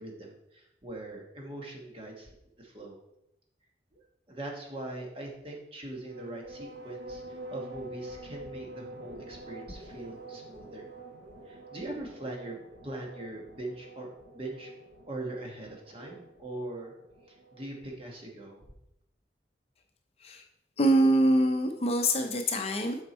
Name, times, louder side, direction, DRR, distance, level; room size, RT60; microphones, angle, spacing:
voice 1, 0.0-3.0 3.9-10.9 11.4-12.6 12.8-14.7 15.1-16.9 17.3-18.6, right 2 dB, 30° right, 0 dB, 1.2 m, -41 dB
sound 1, 6.0-17.9, right 1 dB, 75° right, 1.0 m, -47 dB
voice 2, 20.8-23.0, right 1 dB, 35° left, 4 dB, 0.6 m, -24 dB
7.2 x 4.4 x 4.3 m, 0.84 s
head